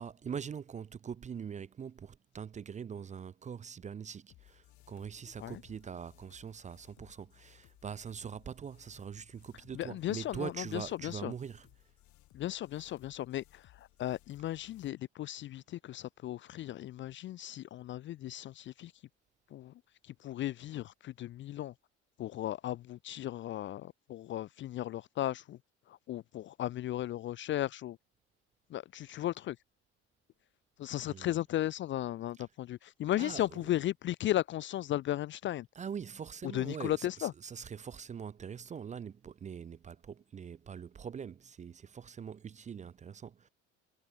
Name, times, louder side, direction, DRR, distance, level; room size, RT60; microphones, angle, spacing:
voice 1, 0.0-11.7 31.1-31.3 33.1-33.6 35.8-43.5, right 7 dB, 20° right, 0.5 m, -43 dB
sound 1, 4.3-14.9, left 16 dB, 50° left, 1.6 m, -63 dB
voice 2, 9.7-11.3 12.3-18.9 19.5-19.7 20.0-21.7 22.2-25.6 25.9-28.0 28.7-29.6 30.8-35.7 36.5-37.3, left 13 dB, 35° left, 0.4 m, -36 dB
figure-of-eight pair, 60°, 36 cm